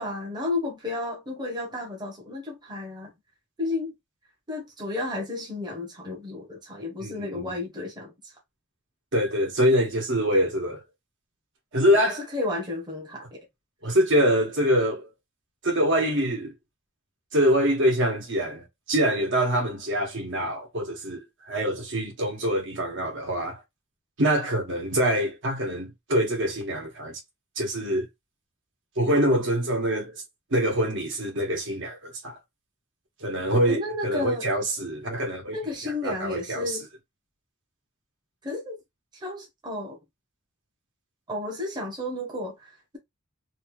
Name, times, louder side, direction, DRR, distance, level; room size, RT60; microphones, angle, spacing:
voice 1, 0.0-3.1 3.6-3.9 4.5-8.3 12.1-13.5 33.7-34.5 35.5-36.8 38.4-38.8 39.1-40.0 41.3-43.0, left 2 dB, 20° right, 1.0 m, -32 dB
voice 2, 7.0-7.5 9.1-10.8 11.7-12.2 13.8-15.1 15.6-16.5 17.3-23.6 24.2-27.2 27.6-28.1 29.0-30.2 30.5-32.3 33.2-35.6 35.8-36.8, equal, 60° right, 1.5 m, -25 dB
3.3 x 2.8 x 3.1 m
head